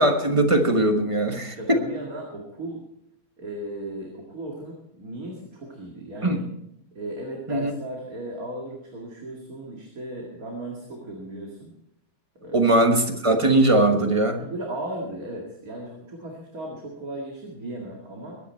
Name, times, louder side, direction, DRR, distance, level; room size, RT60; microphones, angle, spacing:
voice 1, 0.0-1.8 6.2-6.4 7.5-7.7 12.5-14.4, right 1 dB, 25° right, 5 dB, 1.2 m, -20 dB
voice 2, 1.3-2.8 3.4-6.4 6.9-11.7 12.4-12.7 14.4-18.4, right 1 dB, 70° right, -1 dB, 2.6 m, -36 dB
22.5 x 9.3 x 4.4 m, 0.78 s
omnidirectional pair, 1.6 m